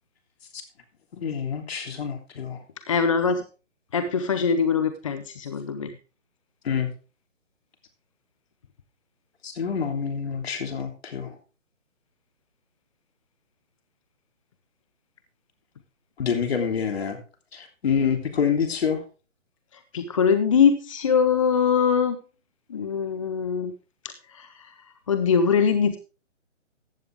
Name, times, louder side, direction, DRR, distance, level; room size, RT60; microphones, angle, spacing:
voice 1, 1.1-2.6 6.6-6.9 9.4-11.4 16.2-17.2 17.5-19.0, left 7 dB, 55° left, 5 dB, 3.1 m, -27 dB
voice 2, 2.9-3.4 3.9-6.0 19.9-22.2 22.7-23.7 24.0-24.7 25.1-26.0, left 6 dB, 25° left, 11 dB, 0.6 m, -22 dB
14.5 x 9.4 x 3.6 m, 0.34 s
hypercardioid pair, 150°, 38 cm